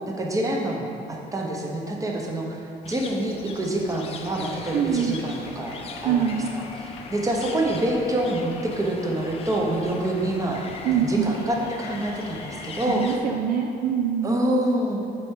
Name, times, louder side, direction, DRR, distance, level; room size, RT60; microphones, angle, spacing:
voice 1, 0.1-2.6 2.8-5.8 6.0-10.7 10.9-13.1 14.2-15.1, right 1 dB, 20° right, 0 dB, 0.8 m, -26 dB
sound 1, 2.8-13.2, left 4 dB, 35° left, 0.5 m, -40 dB
sound 2, 4.2-12.8, left 2 dB, 85° left, 0.9 m, -44 dB
voice 2, 4.7-5.2 6.0-6.5 10.8-11.4 12.9-14.3, right 8 dB, 55° right, 2 dB, 0.4 m, -24 dB
6.7 x 4.5 x 3.7 m, 2.6 s
cardioid pair, 110°, 17 cm